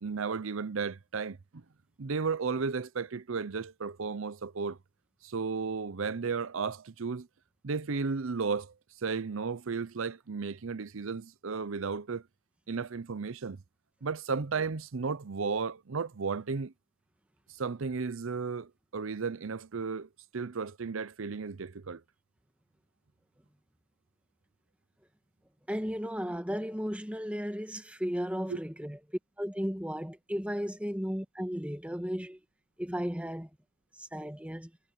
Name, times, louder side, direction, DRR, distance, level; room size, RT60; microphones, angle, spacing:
voice 1, 0.0-1.6 2.0-4.8 5.2-7.3 7.6-8.7 9.0-12.2 12.7-13.6 14.0-16.7 17.6-22.0 28.5-28.6, right 5 dB, 75° right, 0.7 m, -34 dB
voice 2, 25.7-32.4 32.8-33.5 33.9-34.7, equal, 5° right, 1.7 m, -35 dB
head